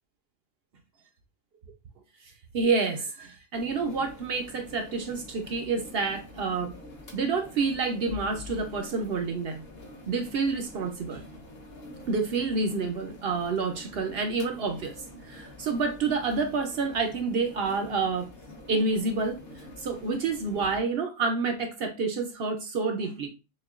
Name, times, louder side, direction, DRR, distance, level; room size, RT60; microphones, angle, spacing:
voice 1, 2.5-6.7 7.1-9.6 10.1-11.2 12.1-18.3 18.7-19.4 19.8-23.3, right 4 dB, 60° right, 0.7 m, -28 dB
sound 1, 3.5-20.8, left 1 dB, 50° left, 1.1 m, -46 dB
6.3 x 2.2 x 2.4 m
omnidirectional pair, 1.4 m